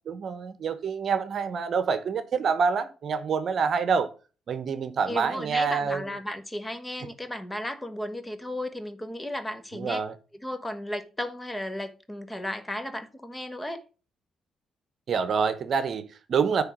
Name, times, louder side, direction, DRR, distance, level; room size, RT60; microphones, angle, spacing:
voice 1, 0.1-4.1 4.5-6.0 9.7-10.1 15.1-16.6, right 5 dB, 55° right, 0.9 m, -27 dB
voice 2, 5.1-10.0 10.4-13.8, left 1 dB, 10° left, 1.1 m, -34 dB
9.7 x 3.6 x 6.1 m
cardioid pair, 90°, 0 cm